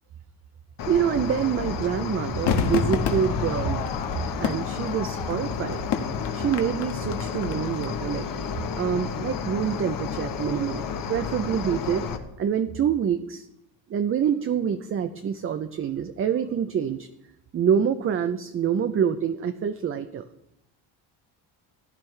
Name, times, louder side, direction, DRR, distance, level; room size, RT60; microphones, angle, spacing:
Cricket, 0.8-12.2, left 6 dB, 45° left, 1.2 m, -32 dB
voice 1, 0.9-3.8 4.4-5.8 6.3-8.3 8.7-12.1 12.4-13.5 13.9-17.1 17.5-20.2, right 8 dB, 30° right, 9 dB, 0.5 m, -26 dB
Crowd / Fireworks, 2.5-7.8 8.1-8.2, left 6 dB, 65° left, 1.6 m, -29 dB
15.5 x 11.0 x 3.3 m, 0.84 s
cardioid pair, 130°, 45 cm